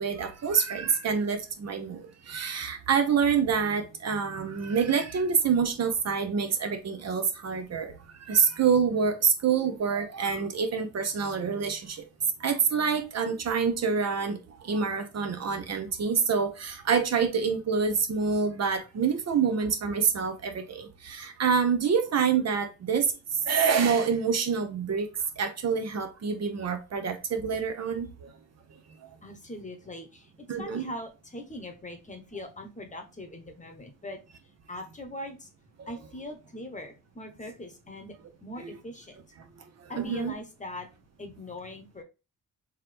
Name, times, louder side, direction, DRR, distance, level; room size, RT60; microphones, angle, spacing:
voice 1, 0.0-7.9 8.2-12.0 12.4-23.1 23.4-25.1 25.4-28.3 30.5-30.8 35.8-35.9 40.0-40.3, right 6 dB, 50° right, 0.8 m, -27 dB
voice 2, 29.2-34.2 34.7-35.5 35.9-38.2 38.4-39.2 39.9-40.9 41.2-42.0, left 1 dB, 25° left, 0.9 m, -41 dB
3.7 x 2.9 x 3.3 m
cardioid pair, 80°, 32 cm